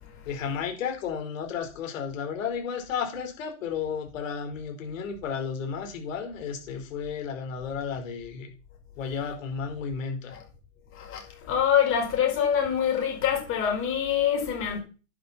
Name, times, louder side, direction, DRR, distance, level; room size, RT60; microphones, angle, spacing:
voice 1, 0.2-8.5 9.0-10.4, left 6 dB, 65° left, 4.9 m, -33 dB
voice 2, 10.9-14.8, left 8 dB, 30° left, 5.7 m, -25 dB
10.5 x 10.0 x 4.5 m
hypercardioid pair, 135°, 42 cm